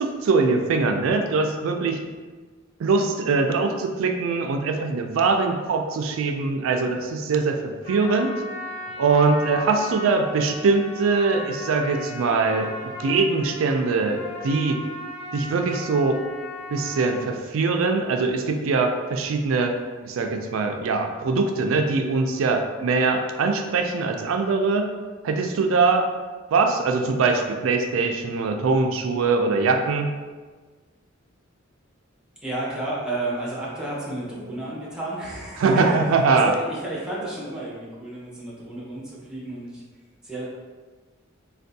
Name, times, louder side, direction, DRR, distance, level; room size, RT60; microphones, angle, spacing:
voice 1, 0.0-2.0 2.8-8.3 9.0-14.8 15.3-16.2 16.7-19.7 20.0-24.9 25.2-26.1 26.5-30.1 35.6-36.5, right 4 dB, 85° right, 4 dB, 0.4 m, -22 dB
Trumpet, 7.8-17.3, left 2 dB, 45° left, 0.9 m, -37 dB
voice 2, 32.4-39.8 40.2-40.4, right 1 dB, 5° right, -7 dB, 0.7 m, -32 dB
3.4 x 2.2 x 2.6 m, 1.4 s
head